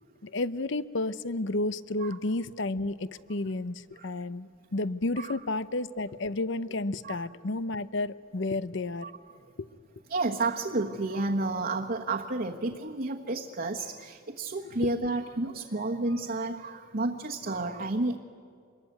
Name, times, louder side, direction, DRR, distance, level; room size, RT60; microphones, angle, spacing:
voice 1, 0.2-9.1 9.6-9.7 14.7-14.9, left 2 dB, 65° left, 15 dB, 0.8 m, -31 dB
voice 2, 10.1-18.2, right 2 dB, 55° right, 0 dB, 1.3 m, -31 dB
26.5 x 22.0 x 9.4 m, 2.3 s
head